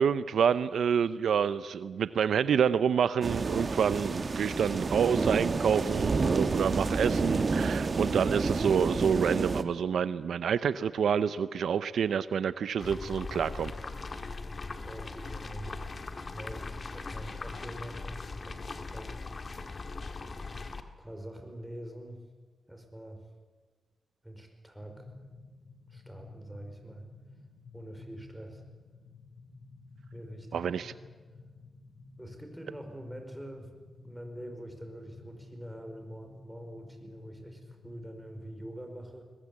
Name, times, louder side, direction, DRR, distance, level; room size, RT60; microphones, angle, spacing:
voice 1, 0.0-13.7 30.5-30.9, right 7 dB, 85° right, 14 dB, 0.6 m, -28 dB
sound 1, 3.2-9.6, right 4 dB, 45° right, 1.4 m, -29 dB
sound 2, 12.8-20.8, left 3 dB, 45° left, 1.7 m, -40 dB
voice 2, 14.8-15.9 16.3-19.2 21.0-22.2 22.7-23.2 24.2-25.1 25.9-27.1 27.7-28.6 30.1-30.7 32.2-33.7 34.0-39.2, right 1 dB, 5° right, 4 dB, 5.0 m, -45 dB
sound 3, 24.8-38.7, left 3 dB, 60° left, 5.8 m, -52 dB
21.0 x 21.0 x 8.5 m, 1.4 s
cardioid pair, 75°, 0 cm